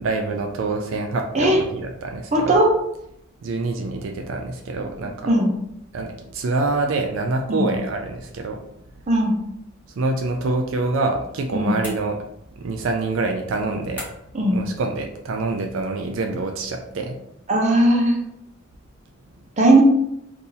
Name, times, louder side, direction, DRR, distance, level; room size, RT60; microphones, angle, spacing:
voice 1, 0.0-2.6 3.4-5.3 5.9-8.6 9.9-12.2 12.6-14.0 14.5-17.2, right 3 dB, 80° right, 3 dB, 0.4 m, -26 dB
voice 2, 2.3-2.7 5.3-5.5 7.5-7.7 9.1-9.3 11.5-11.8 14.3-14.6 17.5-18.2 19.6-19.8, right 1 dB, 35° right, 0 dB, 0.8 m, -17 dB
sound 1, 11.8-12.6 14.0-14.5, left 1 dB, 10° left, 1.3 m, -38 dB
2.7 x 2.6 x 3.8 m, 0.77 s
head